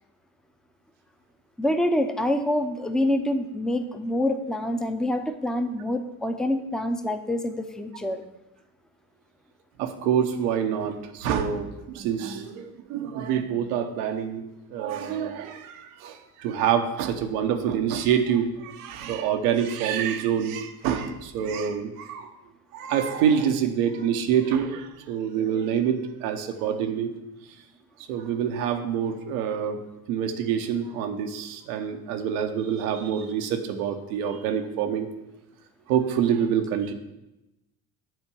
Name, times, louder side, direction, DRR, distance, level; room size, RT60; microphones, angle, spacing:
voice 1, 1.6-8.2, left 1 dB, ahead, 7 dB, 0.7 m, -26 dB
voice 2, 9.8-14.5 14.7-22.3 22.7-27.1 28.1-29.8 30.1-35.1 35.9-36.9, right 8 dB, 80° right, 6 dB, 1.0 m, -26 dB
7.8 x 4.4 x 6.9 m, 0.95 s
hypercardioid pair, 65°, 43 cm